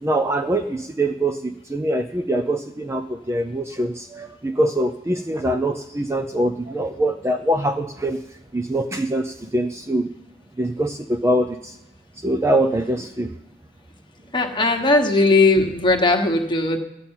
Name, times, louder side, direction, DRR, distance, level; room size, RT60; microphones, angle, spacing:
voice 1, 0.0-8.2 8.5-10.1 10.6-11.7 12.2-13.3, right 1 dB, 15° right, 6 dB, 0.5 m, -23 dB
voice 2, 14.3-16.8, left 2 dB, 25° left, 3 dB, 1.4 m, -18 dB
13.0 x 5.6 x 9.0 m, 0.88 s
head